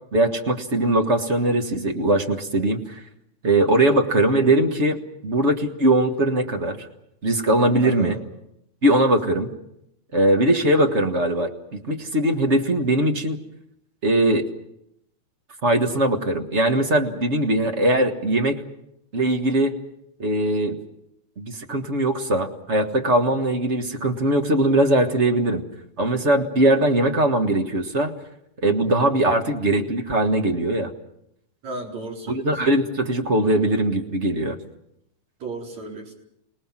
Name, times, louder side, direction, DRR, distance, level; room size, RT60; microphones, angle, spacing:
voice 1, 0.1-3.0 3.4-5.0 5.2-6.9 7.2-8.2 8.8-9.5 10.1-13.4 14.0-14.5 15.6-18.6 19.1-19.8 20.2-20.8 21.4-25.6 26.0-28.1 28.6-30.9 32.3-34.6, right 1 dB, 35° right, 4 dB, 1.2 m, -20 dB
voice 2, 7.8-8.2 10.6-10.9 31.6-32.4 35.4-36.1, right 3 dB, 60° right, 0 dB, 5.6 m, -34 dB
27.5 x 19.0 x 7.4 m, 0.81 s
omnidirectional pair, 3.5 m